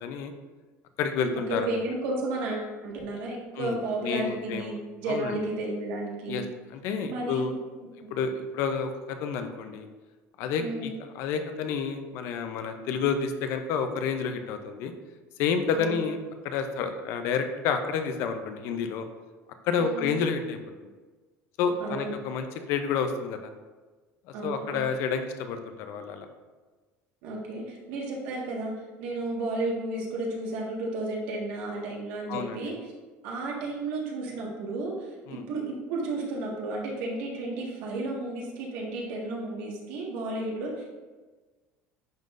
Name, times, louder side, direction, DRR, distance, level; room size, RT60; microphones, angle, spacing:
voice 1, 0.0-0.3 1.0-1.8 3.6-4.8 5.1-5.4 6.3-6.4 6.7-7.6 8.1-9.9 10.4-14.9 15.4-16.2 16.4-19.1 19.6-20.9 21.6-23.5 24.4-26.3 32.3-32.7 35.3-35.4, left 6 dB, 55° left, 7 dB, 0.5 m, -30 dB
voice 2, 1.6-4.7 5.0-6.5 7.0-7.5 8.0-8.1 10.6-10.9 15.7-16.0 19.8-20.1 21.8-22.1 24.3-24.9 27.2-28.7 29.0-32.7 33.2-40.8, right 2 dB, 75° right, -3 dB, 1.6 m, -33 dB
10.5 x 3.8 x 2.5 m, 1.3 s
cardioid pair, 180°, 5 cm